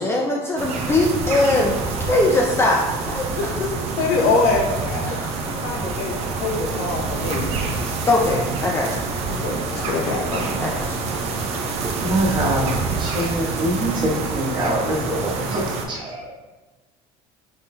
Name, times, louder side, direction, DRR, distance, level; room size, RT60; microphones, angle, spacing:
voice 1, 0.0-3.5 5.0-5.6 8.0-9.0 10.6-11.0, left 2 dB, 20° left, -1 dB, 0.4 m, -21 dB
sound 1, 0.6-15.8, right 4 dB, 55° right, 0.6 m, -27 dB
voice 2, 3.4-3.7 4.0-7.5 9.3-10.5, left 3 dB, 85° left, 1 dB, 0.7 m, -24 dB
voice 3, 12.0-16.3, right 1 dB, 35° right, -4 dB, 1.1 m, -24 dB
4.3 x 3.2 x 2.2 m, 1.2 s
supercardioid pair, 105°, 13 cm